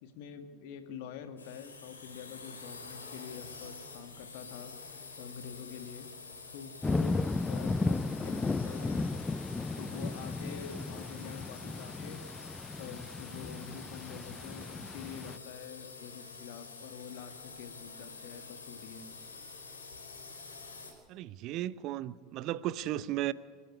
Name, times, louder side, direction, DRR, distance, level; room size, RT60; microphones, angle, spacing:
voice 1, 0.0-4.7 5.2-6.1 6.5-9.3 9.8-12.2 12.8-19.0, left 7 dB, 55° left, 7 dB, 2.3 m, -46 dB
sound 1, 1.4-20.9, left 4 dB, 75° left, 5.0 m, -48 dB
sound 2, 6.8-15.4, left 3 dB, 15° left, 0.6 m, -35 dB
voice 2, 21.1-23.3, right 14 dB, 45° right, 18 dB, 0.7 m, -35 dB
29.5 x 12.5 x 9.9 m, 1.5 s
figure-of-eight pair, 80°, 0 cm